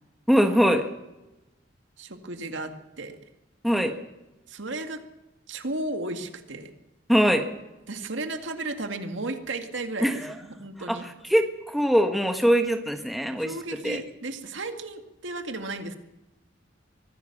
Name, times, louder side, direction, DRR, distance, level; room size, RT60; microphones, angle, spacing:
voice 1, 0.3-0.8 3.6-3.9 7.1-7.5 10.0-10.3 10.9-11.0 11.3-14.0, equal, ahead, 5 dB, 1.5 m, -22 dB
voice 2, 2.0-3.2 4.5-5.0 5.5-6.7 7.9-11.1 13.4-16.0, right 2 dB, 80° right, 6 dB, 2.1 m, -34 dB
23.5 x 15.5 x 7.3 m, 1.0 s
head